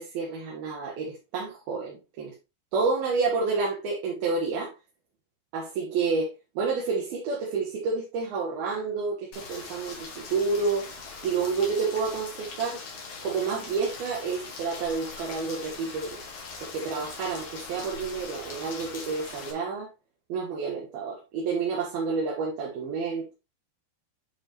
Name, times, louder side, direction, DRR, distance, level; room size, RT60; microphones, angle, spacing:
voice 1, 0.0-2.3 2.7-4.7 5.5-10.9 11.2-12.8 13.2-16.2 16.6-19.9 20.3-23.3, right 4 dB, 75° right, -2 dB, 3.4 m, -29 dB
Rain, 9.3-19.5, left 4 dB, 50° left, 2.7 m, -41 dB
9.6 x 5.3 x 3.0 m, 0.27 s
omnidirectional pair, 4.4 m